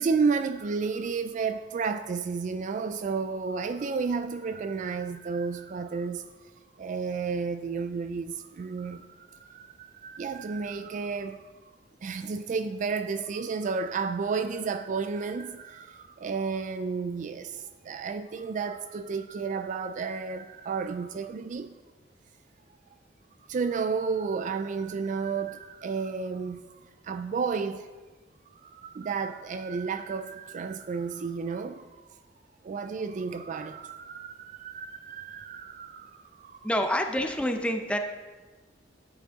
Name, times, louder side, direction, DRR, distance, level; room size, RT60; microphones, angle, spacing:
voice 1, 0.0-6.3 6.8-11.7 12.0-21.8 23.5-27.9 28.5-32.0 32.6-36.7, right 5 dB, 40° right, 0.3 m, -32 dB
voice 2, 36.6-38.0, equal, 5° left, 0.7 m, -27 dB
11.0 x 8.9 x 3.6 m
head